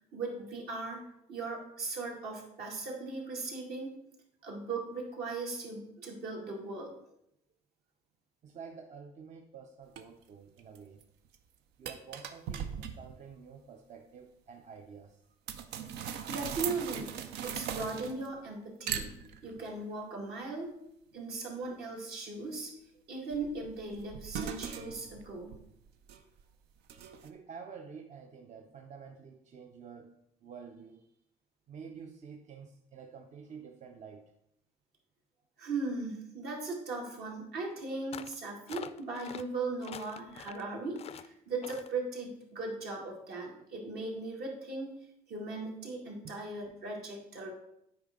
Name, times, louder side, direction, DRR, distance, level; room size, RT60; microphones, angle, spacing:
voice 1, 0.1-4.0 4.4-7.0 16.3-17.2 17.4-19.1 19.4-20.8 21.1-22.7 23.1-25.6 35.6-45.0 45.3-47.5, right 3 dB, 70° right, -2 dB, 2.2 m, -38 dB
voice 2, 8.4-11.1 11.8-15.3 27.2-31.1 31.7-34.3, right 6 dB, 45° right, 5 dB, 0.6 m, -49 dB
sound 1, 10.0-10.1 10.6-11.0 11.3-11.4 11.9-13.2 15.5-18.4 18.9-19.7 23.3-26.4 26.9-27.3, right 8 dB, 85° right, 0.6 m, -39 dB
sound 2, 38.1-38.4 38.7-39.4 39.8-40.6 40.9-41.3 41.6-41.9, left 8 dB, 35° left, 0.4 m, -45 dB
8.7 x 4.9 x 3.7 m, 0.78 s
cardioid pair, 110°, 17 cm